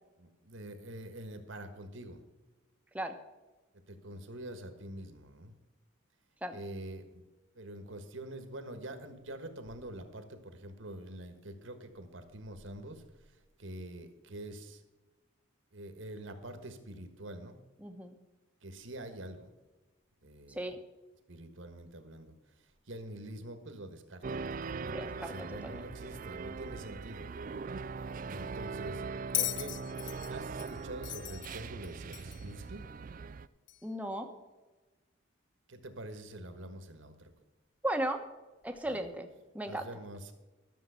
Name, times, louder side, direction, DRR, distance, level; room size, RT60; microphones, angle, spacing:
voice 1, 0.2-2.2 3.9-5.5 6.5-7.2 7.5-14.8 15.7-17.6 18.6-19.5 20.2-20.7 21.3-27.3 28.3-29.0 29.3-32.8 35.7-37.3 38.8-39.1 39.7-40.3, right 1 dB, 65° right, 7 dB, 1.5 m, -46 dB
voice 2, 17.8-18.1 20.5-20.8 24.8-25.8 33.8-34.3 37.8-38.2 38.6-39.3 39.5-39.9, right 1 dB, 5° right, 5 dB, 1.0 m, -36 dB
sound 1, 24.2-33.5, right 4 dB, 40° right, 0.3 m, -41 dB
Bell, 29.3-32.5 33.7-33.8, left 15 dB, 55° left, 0.5 m, -38 dB
13.0 x 7.3 x 5.7 m, 1.2 s
head